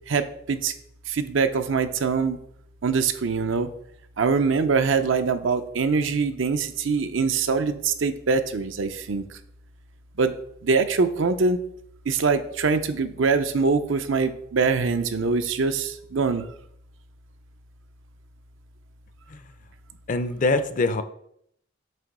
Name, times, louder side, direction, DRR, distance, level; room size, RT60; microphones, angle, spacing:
voice 1, 0.1-0.7 1.1-2.4 2.8-3.7 4.2-9.2 10.2-10.3 10.6-11.6 12.1-16.4, right 4 dB, 70° right, 0.6 m, -23 dB
voice 2, 20.1-21.0, left 2 dB, 40° left, 0.5 m, -24 dB
7.6 x 3.0 x 5.9 m
head